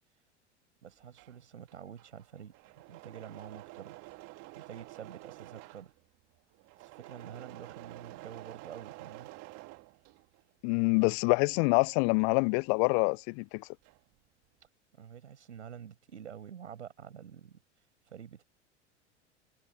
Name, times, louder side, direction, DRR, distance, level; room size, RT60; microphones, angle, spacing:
voice 1, 0.8-2.5 2.9-4.0 4.3-5.9 6.8-9.3 14.9-17.6 18.1-18.4, right 8 dB, 75° right, 5.9 m, -48 dB
Engine / Mechanisms, 0.9-10.5 10.9-13.2 13.5-14.2, right 23 dB, 45° right, 1.9 m, -50 dB
voice 2, 10.6-13.7, left 40 dB or more, 35° left, 0.4 m, -26 dB
figure-of-eight pair, 85°, 36 cm